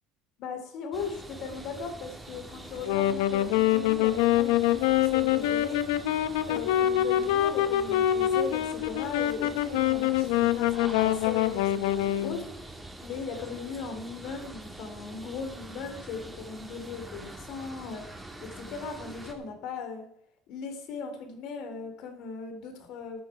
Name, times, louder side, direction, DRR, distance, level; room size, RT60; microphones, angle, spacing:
voice 1, 0.4-5.8 6.5-18.1 18.4-20.1 20.5-23.2, left 5 dB, 65° left, 7 dB, 2.7 m, -38 dB
sound 1, 0.9-19.3, right 1 dB, 10° right, 2.4 m, -45 dB
Wind instrument woodwind instrument, 2.7-12.4, left 12 dB, 85° left, 0.8 m, -25 dB
13.0 x 9.5 x 4.6 m, 0.75 s
supercardioid pair, 105°, 0 cm